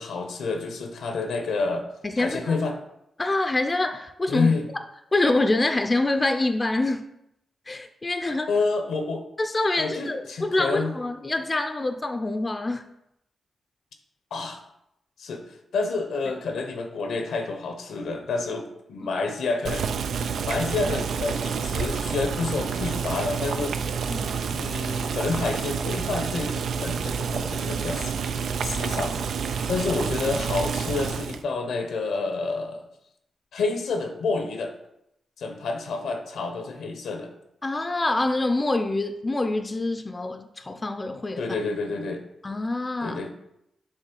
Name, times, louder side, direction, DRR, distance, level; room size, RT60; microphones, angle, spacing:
voice 1, 0.0-1.8 2.2-2.7 4.3-4.7 8.5-9.2 9.8-10.9 14.3-14.6 15.2-15.4 15.7-19.9 20.4-23.8 24.5-29.1 29.7-32.8 33.5-34.7 35.4-37.3 41.4-42.2 43.0-43.3, left 3 dB, 85° left, 5 dB, 0.9 m, -29 dB
voice 2, 2.0-2.6 3.2-4.5 5.1-7.1 7.7-8.5 9.4-12.8 20.2-20.3 24.1-24.4 37.6-41.4 42.4-43.2, left 2 dB, 30° left, 7 dB, 0.5 m, -26 dB
Boiling, 19.6-31.4, right 6 dB, 80° right, 0.4 m, -29 dB
6.6 x 3.3 x 4.6 m, 0.82 s
cardioid pair, 55°, 0 cm